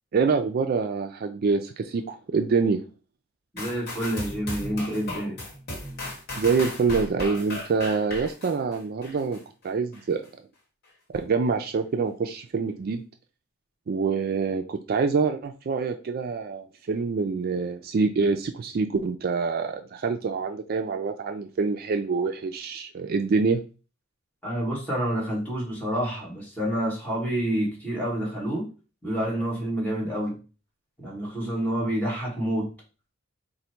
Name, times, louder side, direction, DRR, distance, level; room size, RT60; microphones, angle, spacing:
voice 1, 0.1-2.8 6.4-10.2 11.1-13.0 13.9-23.6, right 4 dB, 45° right, 0.3 m, -26 dB
voice 2, 3.5-5.4 24.4-28.7 29.0-30.4 31.0-32.7, right 1 dB, 10° left, 1.5 m, -28 dB
sound 1, 3.6-9.4 9.9-10.0, left 1 dB, 50° left, 1.1 m, -36 dB
3.9 x 2.1 x 4.4 m
head